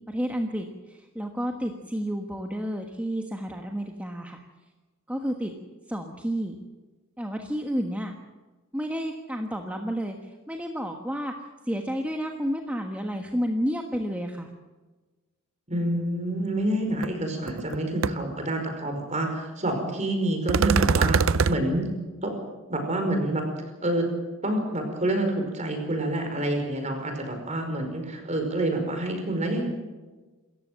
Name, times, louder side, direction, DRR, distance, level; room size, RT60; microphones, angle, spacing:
voice 1, 0.1-4.4 5.1-5.5 5.9-6.6 7.2-8.1 8.7-11.3 11.6-14.5, equal, 5° right, 2 dB, 1.3 m, -31 dB
voice 2, 15.7-21.2 21.5-21.9 22.2-22.3 22.7-23.4 23.8-24.1 24.4-29.6, right 1 dB, 35° right, 4 dB, 5.2 m, -27 dB
sound 1, 17.0-17.1 17.5-17.8 18.0-18.1 20.5-21.6, right 5 dB, 65° right, 0.6 m, -22 dB
27.5 x 14.5 x 7.6 m, 1.2 s
head